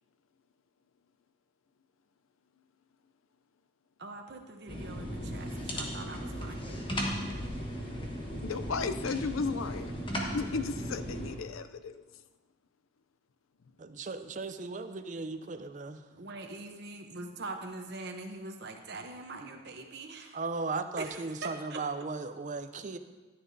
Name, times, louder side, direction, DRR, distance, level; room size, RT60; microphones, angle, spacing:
voice 1, 4.0-6.9 16.1-20.4 21.0-21.8, right 3 dB, 55° right, 3 dB, 0.8 m, -43 dB
sound 1, 4.7-11.3, equal, 25° left, 1.2 m, -36 dB
voice 2, 8.4-9.9 10.3-12.0, left 4 dB, 85° left, 11 dB, 0.5 m, -34 dB
voice 3, 13.8-16.0 20.3-23.0, right 3 dB, 40° right, 9 dB, 0.5 m, -36 dB
13.5 x 9.4 x 2.7 m, 1.3 s
head